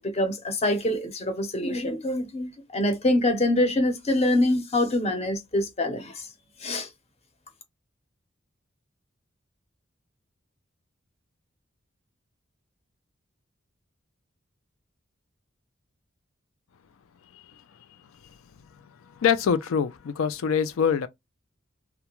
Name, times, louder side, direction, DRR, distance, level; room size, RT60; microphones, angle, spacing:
voice 1, 0.0-6.3 6.6-6.9, left 1 dB, 30° left, 0.6 m, -25 dB
voice 2, 19.1-21.1, left 7 dB, 85° left, 0.4 m, -24 dB
2.3 x 2.1 x 2.9 m
head